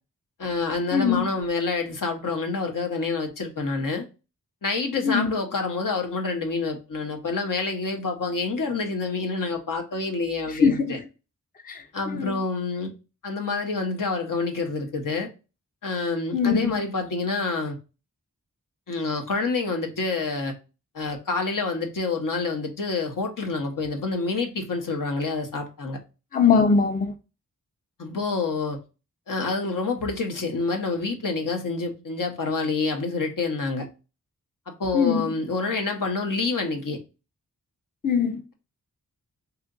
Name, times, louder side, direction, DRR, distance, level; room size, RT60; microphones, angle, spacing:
voice 1, 0.4-4.1 4.6-11.0 11.9-12.9 13.2-15.3 15.8-17.8 18.9-20.6 20.9-26.0 28.0-28.8 29.3-33.9 34.7-37.0, left 3 dB, 65° left, 0.8 m, -27 dB
voice 2, 0.9-1.3 5.0-5.3 10.5-11.0 11.6-11.8 12.1-12.4 16.3-16.8 26.3-27.1 34.9-35.3 38.0-38.4, left 5 dB, 25° left, 0.5 m, -21 dB
2.8 x 2.4 x 3.8 m
cardioid pair, 40°, 35 cm